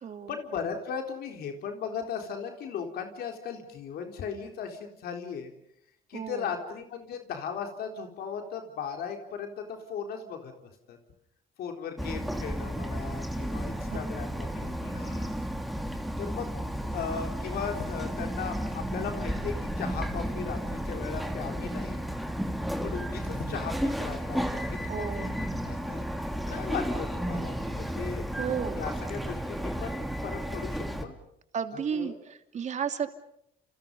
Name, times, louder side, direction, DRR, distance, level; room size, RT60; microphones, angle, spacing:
voice 1, 0.3-5.5 6.1-11.0 11.6-15.3 16.2-16.5 16.8-22.0 22.8-28.2 28.7-31.2 31.7-32.1, left 7 dB, 65° left, 4 dB, 4.1 m, -37 dB
voice 2, 6.1-6.5 24.9-25.3 28.4-28.8 31.5-33.1, right 7 dB, 45° right, 7 dB, 2.8 m, -33 dB
Bird vocalization bird call bird song, 12.0-31.1, equal, ahead, 3.0 m, -33 dB
30.0 x 29.5 x 5.4 m, 0.74 s
cardioid pair, 110°, 17 cm